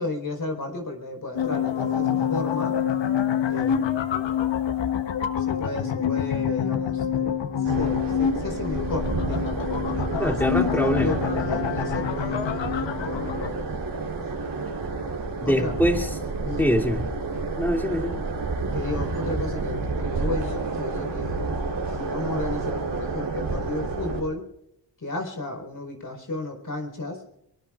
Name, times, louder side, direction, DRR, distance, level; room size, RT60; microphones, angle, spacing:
voice 1, 0.0-2.8 3.5-4.0 5.4-9.5 9.9-13.7 15.4-15.7 16.4-16.7 18.7-21.4 21.9-24.4 25.0-27.2, left 2 dB, 45° left, 3 dB, 4.7 m, -33 dB
sound 1, 1.3-13.5, left 9 dB, 85° left, 1.1 m, -26 dB
sound 2, 7.6-24.2, right 3 dB, 70° right, 3.9 m, -29 dB
voice 2, 10.2-11.1 15.4-16.1 16.6-17.0 17.6-18.2, equal, 5° left, 0 dB, 2.9 m, -23 dB
23.0 x 21.5 x 2.5 m, 0.82 s
cardioid pair, 65°, 43 cm